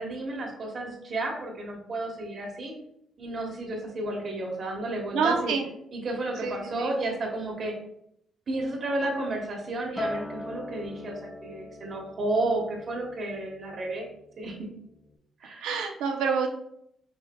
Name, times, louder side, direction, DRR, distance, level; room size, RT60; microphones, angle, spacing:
voice 1, 0.0-2.7 3.2-5.5 5.9-7.7 8.5-14.1 14.4-14.5 15.4-15.7, right 2 dB, 50° right, 0 dB, 1.3 m, -32 dB
voice 2, 5.1-5.6 6.4-6.9 15.6-16.5, right 5 dB, 90° right, 4 dB, 0.6 m, -27 dB
Acoustic guitar, 10.0-14.4 14.8-15.2, left 1 dB, 10° left, 0.5 m, -40 dB
4.9 x 3.2 x 2.3 m, 0.74 s
cardioid pair, 90°, 0 cm